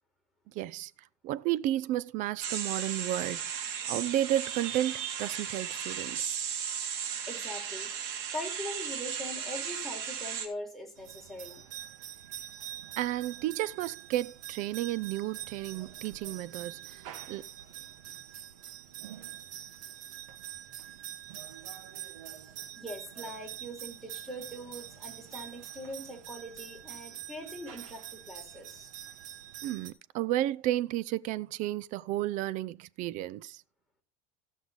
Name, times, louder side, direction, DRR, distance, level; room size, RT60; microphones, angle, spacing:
voice 1, 0.5-0.9 1.2-3.6 3.9-6.4 13.0-17.0 17.3-17.5 29.6-33.6, right 14 dB, 50° right, 0.6 m, -32 dB
sound 1, 2.4-10.5, right 8 dB, 70° right, 2.8 m, -35 dB
voice 2, 7.0-7.9 8.3-11.6 22.8-28.9, left 1 dB, ahead, 4.5 m, -42 dB
sound 2, 11.0-29.9, right 11 dB, 85° right, 1.4 m, -45 dB
15.0 x 6.4 x 4.1 m
supercardioid pair, 125°, 16 cm